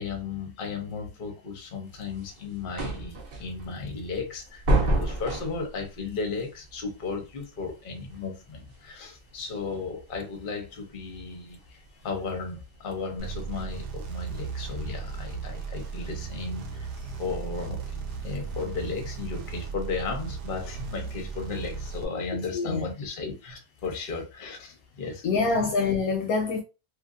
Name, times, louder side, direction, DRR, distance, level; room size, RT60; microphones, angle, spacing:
voice 1, 0.0-16.9 17.2-25.7, left 4 dB, 45° left, 0.8 m, -35 dB
sound 1, 1.9-14.0, right 1 dB, 65° right, 0.5 m, -32 dB
sound 2, 13.2-22.1, right 5 dB, 80° right, 1.3 m, -36 dB
voice 2, 22.5-22.8 25.2-26.6, left 4 dB, 70° left, 1.0 m, -25 dB
3.1 x 2.6 x 2.4 m
omnidirectional pair, 1.7 m